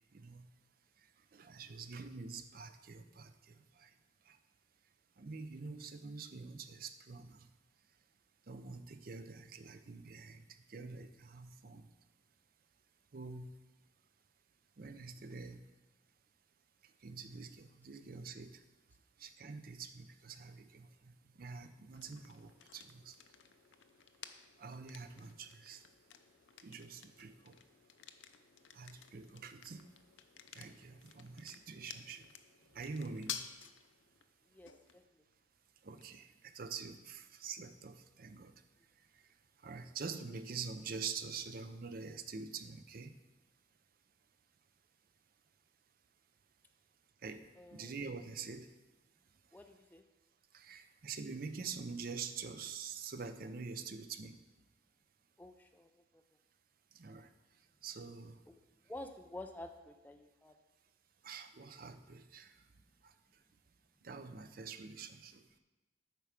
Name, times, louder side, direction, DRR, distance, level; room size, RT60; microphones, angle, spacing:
voice 1, 1.3-3.3 3.8-3.9 5.2-7.3 8.5-10.4 10.7-11.8 13.1-13.5 14.8-15.6 17.0-18.6 19.2-20.9 21.4-23.1 24.6-25.8 26.6-27.5 28.8-29.8 30.6-32.2 32.7-33.4 35.8-38.5 39.6-43.1 47.2-47.4 47.7-48.7 50.5-54.3 57.0-57.3 57.8-58.4 61.2-62.5 64.0-65.3, right 5 dB, 50° right, 9 dB, 0.5 m, -46 dB
sound 1, 21.9-39.7, left 9 dB, 80° left, 0.5 m, -54 dB
voice 2, 34.5-35.2 47.6-47.9 49.5-50.0 55.4-56.2 58.5-58.6 58.9-60.5, left 1 dB, 10° left, 5 dB, 0.4 m, -50 dB
8.3 x 4.6 x 5.8 m, 1.1 s
head